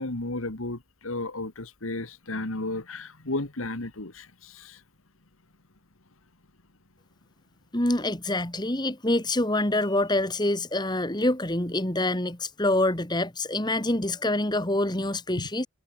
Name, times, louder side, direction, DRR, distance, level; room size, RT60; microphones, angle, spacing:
voice 1, 0.0-4.8 15.4-15.5, left 2 dB, 75° left, 2.2 m, -33 dB
voice 2, 7.7-15.7, left 1 dB, 20° left, 2.3 m, -26 dB
head